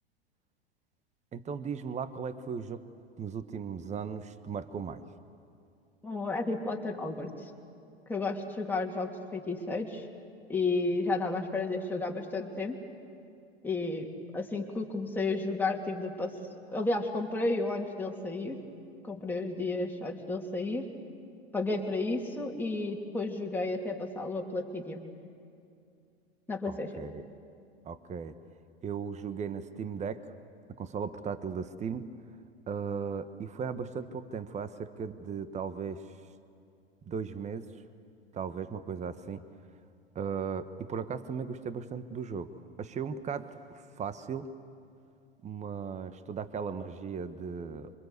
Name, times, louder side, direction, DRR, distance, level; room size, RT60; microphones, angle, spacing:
voice 1, 1.3-2.8 3.2-5.0 26.7-27.2 27.8-28.4 28.8-30.2 30.8-32.1 32.7-36.0 37.1-37.6 38.3-39.4 40.1-42.5 42.8-44.5 45.4-47.9, right 6 dB, 20° right, 12 dB, 1.2 m, -37 dB
voice 2, 6.0-7.5 8.1-10.1 10.5-12.8 13.6-14.1 14.3-16.3 16.7-18.6 19.0-20.9 21.5-25.0 26.5-26.9, left 3 dB, 5° left, 0 dB, 3.0 m, -32 dB
27.0 x 25.0 x 8.2 m, 2.4 s
hypercardioid pair, 95°, 32 cm